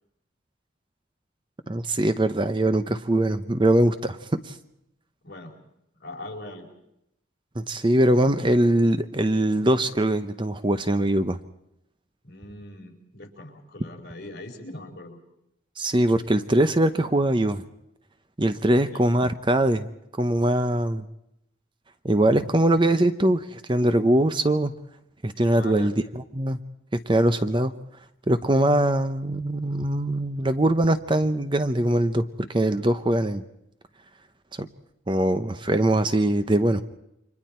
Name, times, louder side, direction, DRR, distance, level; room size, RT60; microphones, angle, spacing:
voice 1, 1.7-4.6 7.6-11.4 15.8-17.6 18.4-19.9 20.2-21.0 22.0-24.7 25.2-25.9 26.3-26.6 27.1-27.7 28.3-32.2 32.5-33.4 34.6-34.7 35.1-36.8, right 1 dB, 25° right, 10 dB, 0.8 m, -22 dB
voice 2, 6.0-6.7 12.2-15.2 18.9-19.0 25.5-25.9, left 1 dB, 55° left, 1 dB, 4.6 m, -40 dB
30.0 x 25.0 x 4.4 m, 0.81 s
head